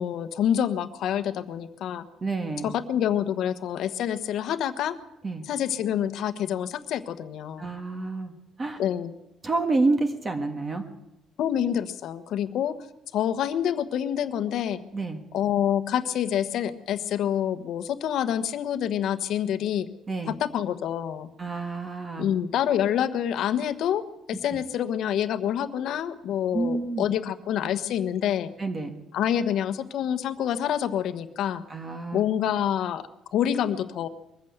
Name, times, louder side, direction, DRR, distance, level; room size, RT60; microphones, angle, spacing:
voice 1, 0.0-2.0 2.6-4.9 5.5-7.7 8.8-9.1 11.4-12.7 13.1-14.8 15.3-19.9 20.4-21.3 22.2-24.0 24.3-28.5 29.1-31.6 32.1-33.0 33.3-34.1, left 10 dB, 60° left, 11 dB, 1.3 m, -27 dB
voice 2, 2.2-2.7 5.2-5.4 7.6-8.8 9.4-10.9 14.9-15.2 20.1-20.4 21.4-22.3 26.5-27.1 28.6-28.9 31.7-32.2, right 3 dB, 20° right, 6 dB, 1.6 m, -28 dB
22.0 x 14.5 x 8.1 m, 0.89 s
cardioid pair, 155°, 0 cm